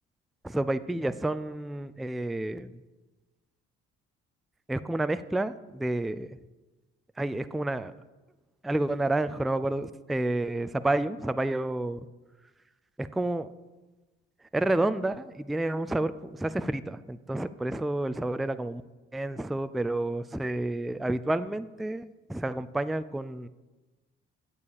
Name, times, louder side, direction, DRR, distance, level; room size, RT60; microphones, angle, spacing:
voice 1, 0.4-2.8 4.7-6.3 7.2-7.9 8.6-12.0 13.0-13.5 14.5-18.8 19.1-23.5, right 2 dB, ahead, 13 dB, 0.4 m, -30 dB
8.7 x 6.9 x 6.5 m, 1.2 s
hypercardioid pair, 50°, 30 cm